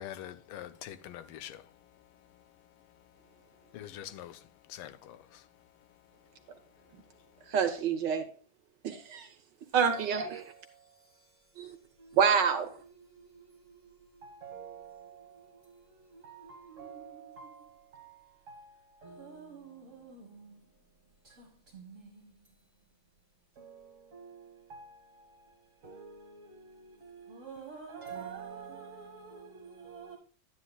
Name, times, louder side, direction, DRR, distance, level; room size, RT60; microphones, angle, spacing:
voice 1, 0.0-1.6 3.7-4.4 4.7-5.2, left 11 dB, 85° left, 1.5 m, -44 dB
voice 2, 7.5-8.3 8.8-9.3 9.7-10.4 11.6-11.8 12.2-12.7, right 7 dB, 60° right, 1.4 m, -27 dB
voice 3, 9.8-12.2 12.7-20.7 21.2-22.5 23.5-30.2, right 6 dB, 40° right, 1.6 m, -49 dB
11.5 x 9.5 x 2.3 m
omnidirectional pair, 2.4 m